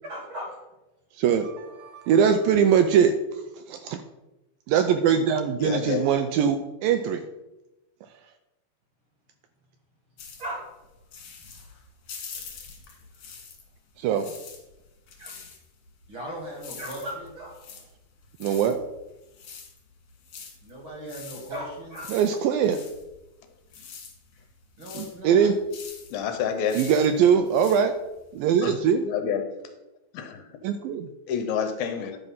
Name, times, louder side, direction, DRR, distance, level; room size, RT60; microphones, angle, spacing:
voice 1, 0.0-0.6 10.4-10.6 15.2-15.3 16.1-17.6 20.6-22.1 24.8-25.5, equal, 45° right, -1 dB, 1.8 m, -37 dB
voice 2, 1.2-3.1 3.7-4.0 4.7-7.2 14.0-14.3 18.4-18.8 22.1-22.8 24.9-25.6 26.7-27.9 28.3-29.0 30.6-31.1, right 7 dB, 80° right, 7 dB, 2.1 m, -22 dB
voice 3, 5.6-6.1 26.1-26.8 28.6-28.8 29.0-29.5 30.1-30.4 31.3-32.2, left 7 dB, 75° left, 6 dB, 2.5 m, -28 dB
sound 1, 10.2-13.8 14.1-28.7, left 5 dB, 55° left, 2.8 m, -45 dB
10.5 x 5.5 x 5.5 m, 0.99 s
omnidirectional pair, 4.5 m